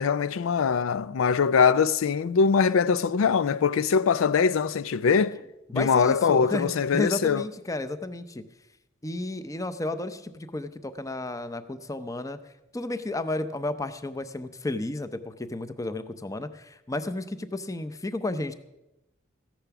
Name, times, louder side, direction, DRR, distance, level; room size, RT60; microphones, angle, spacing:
voice 1, 0.0-5.4 5.7-7.4, left 6 dB, 85° left, 0.4 m, -22 dB
voice 2, 5.7-8.4 9.0-12.4 12.7-18.5, left 2 dB, 15° left, 0.6 m, -32 dB
14.5 x 10.5 x 5.9 m
head